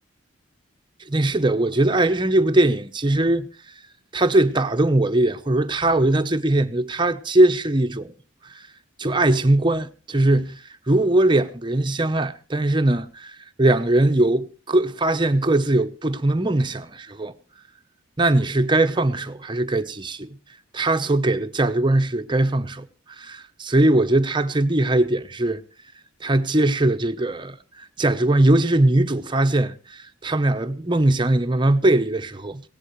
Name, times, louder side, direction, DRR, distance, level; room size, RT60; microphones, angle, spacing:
voice 1, 1.1-3.5 4.1-8.1 8.5-8.6 9.0-17.3 18.2-20.3 20.7-22.9 23.2-25.6 26.2-32.6, right 1 dB, 25° right, 0.8 m, -20 dB
21.5 x 17.0 x 3.2 m
head